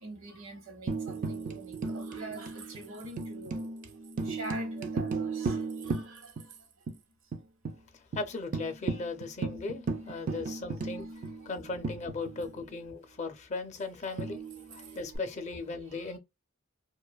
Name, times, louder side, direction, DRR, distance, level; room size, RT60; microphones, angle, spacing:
voice 1, 0.0-3.7 4.2-6.3 10.3-10.4 11.0-11.1 15.9-16.1, right 2 dB, 80° right, 1.0 m, -44 dB
Tambourine, 0.9-6.6 6.9-7.0 7.3-7.8 8.1-8.2 8.5-12.7 14.2-15.2, right 3 dB, 40° right, 0.3 m, -36 dB
voice 2, 8.2-11.1 11.5-14.4 14.7-16.2, left 3 dB, 35° left, 0.5 m, -37 dB
2.5 x 2.3 x 2.2 m
head